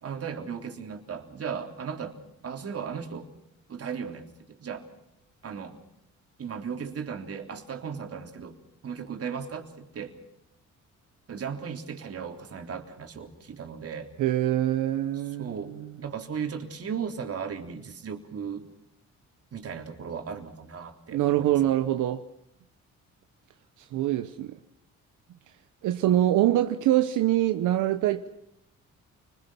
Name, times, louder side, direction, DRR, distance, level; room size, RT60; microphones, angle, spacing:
voice 1, 0.0-2.2 2.4-3.3 3.7-4.9 5.4-5.8 6.4-8.6 8.8-10.2 11.3-14.1 15.4-18.7 19.5-21.7, right 6 dB, 50° right, 3.5 m, -36 dB
voice 2, 14.2-15.9 21.1-22.2 23.8-24.6 25.8-28.3, right 13 dB, 85° right, 1.0 m, -24 dB
29.5 x 21.5 x 5.9 m
cardioid pair, 90°, 30 cm